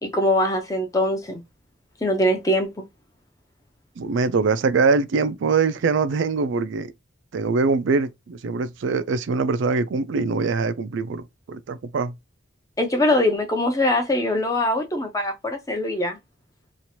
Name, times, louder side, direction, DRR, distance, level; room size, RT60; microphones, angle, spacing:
voice 1, 0.0-1.4 2.0-2.8 12.8-16.2, left 1 dB, 15° left, 0.6 m, -22 dB
voice 2, 4.0-6.9 7.3-12.1, right 4 dB, 65° right, 0.4 m, -23 dB
3.0 x 2.5 x 2.7 m
head